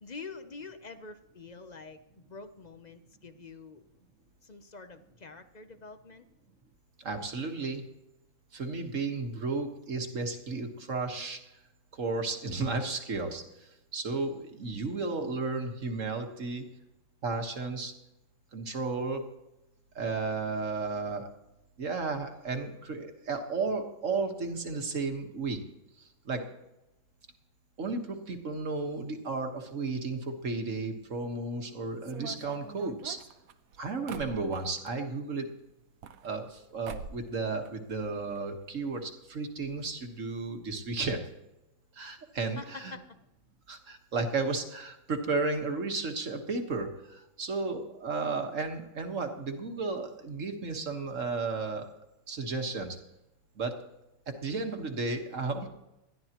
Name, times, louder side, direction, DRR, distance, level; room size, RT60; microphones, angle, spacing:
voice 1, 0.0-3.9 4.4-6.2 42.6-43.0, left 4 dB, 40° left, 9 dB, 0.7 m, -46 dB
voice 2, 7.0-7.8 8.5-11.4 11.9-16.6 17.2-17.9 18.5-19.2 20.0-21.3 21.8-25.6 26.0-26.4 27.8-33.2 33.8-35.5 36.2-41.2 41.9-42.9 43.7-51.9 52.3-53.0 53.6-53.7 54.3-55.7, right 3 dB, 60° right, 4 dB, 1.8 m, -33 dB
sound 1, 32.0-34.9 35.8-36.6 36.8-37.3 37.6-38.4 38.7-38.8 39.0-39.1 39.8-39.9 40.2-40.3, right 6 dB, 80° right, 1.2 m, -45 dB
20.0 x 13.5 x 3.0 m, 0.91 s
omnidirectional pair, 1.5 m